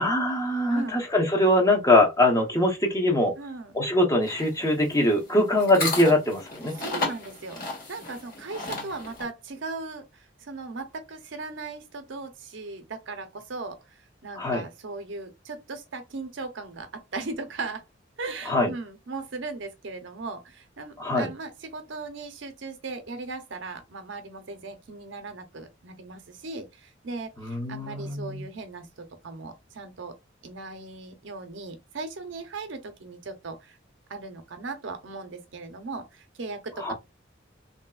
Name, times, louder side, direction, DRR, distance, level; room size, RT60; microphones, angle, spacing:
voice 1, 0.0-3.3 3.7-6.7 14.4-14.6 18.5-18.7 21.0-21.3 27.4-28.5 36.8-36.9, left 1 dB, 15° left, 0.8 m, -22 dB
voice 2, 0.7-1.0 3.4-3.7 6.8-7.6 7.9-17.8 18.2-28.9 29.2-30.1 30.4-33.8 34.1-36.9, right 3 dB, 70° right, 0.7 m, -38 dB
sound 1, 4.2-9.2, left 3 dB, 50° left, 1.4 m, -34 dB
3.2 x 2.7 x 2.3 m
head